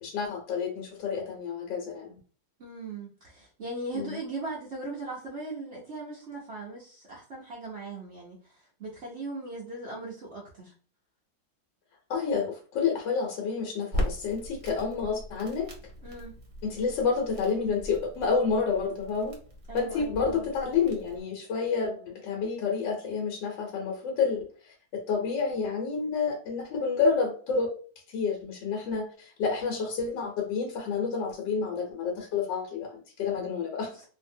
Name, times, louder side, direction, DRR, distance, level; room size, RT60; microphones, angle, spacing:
voice 1, 0.0-2.1 3.9-4.2 12.1-15.7 16.6-19.4 19.7-27.7 28.1-33.9, left 5 dB, 75° left, 0 dB, 1.4 m, -29 dB
voice 2, 2.6-10.7 16.0-16.3 19.7-20.5, right 2 dB, 85° right, -4 dB, 0.5 m, -39 dB
Crackle, 13.9-21.2, left 1 dB, 55° right, 0.9 m, -39 dB
2.8 x 2.6 x 2.6 m, 0.40 s
omnidirectional pair, 2.1 m